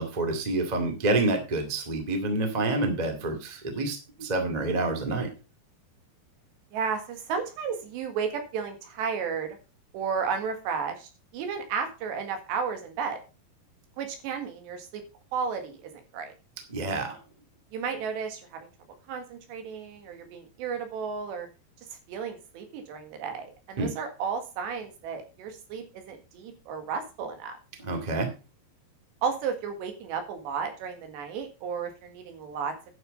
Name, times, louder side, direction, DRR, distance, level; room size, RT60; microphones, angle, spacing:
voice 1, 0.0-5.3 16.7-17.2 23.8-23.9 27.8-28.3, right 2 dB, 30° right, 4 dB, 0.7 m, -28 dB
voice 2, 6.7-9.6 9.9-13.2 14.0-15.0 15.3-16.3 17.7-18.7 19.1-21.5 22.1-27.5 29.2-32.7, right 6 dB, 80° right, 6 dB, 4.0 m, -33 dB
11.0 x 6.4 x 5.3 m, 0.31 s
omnidirectional pair, 4.9 m